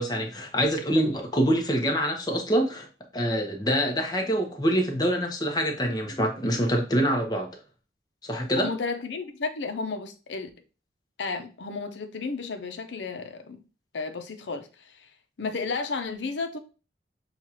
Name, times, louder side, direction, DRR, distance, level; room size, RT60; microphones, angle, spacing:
voice 1, 0.0-2.9 3.1-7.5 8.2-8.7, equal, 25° left, 0.8 m, -25 dB
voice 2, 8.6-10.5 11.2-13.6 13.9-15.1 15.4-16.6, left 4 dB, 90° left, 0.6 m, -33 dB
6.4 x 2.4 x 2.8 m
head